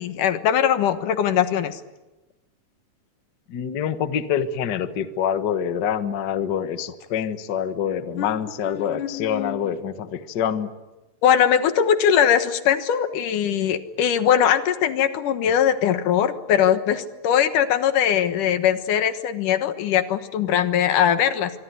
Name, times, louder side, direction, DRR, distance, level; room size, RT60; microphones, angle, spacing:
voice 1, 0.0-1.8 8.2-8.4 8.6-9.6 11.2-21.5, left 9 dB, 85° left, 10 dB, 3.0 m, -21 dB
voice 2, 3.5-10.7, left 8 dB, 50° left, 10 dB, 1.4 m, -26 dB
25.0 x 24.0 x 9.4 m, 1.1 s
omnidirectional pair, 3.6 m